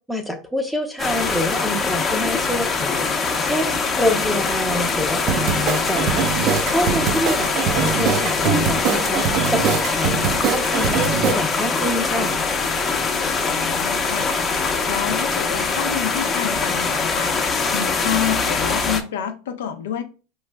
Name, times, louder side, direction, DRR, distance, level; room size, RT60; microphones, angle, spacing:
voice 1, 0.1-12.4, left 1 dB, 5° right, 4 dB, 0.6 m, -26 dB
sound 1, 1.0-19.0, left 4 dB, 30° left, 0.8 m, -23 dB
sound 2, 5.3-11.3, right 8 dB, 55° right, 0.5 m, -23 dB
voice 2, 13.4-14.3 14.9-17.3 17.7-20.0, left 8 dB, 80° left, 8 dB, 0.6 m, -28 dB
4.8 x 3.1 x 2.2 m, 0.34 s
hypercardioid pair, 95°, 0 cm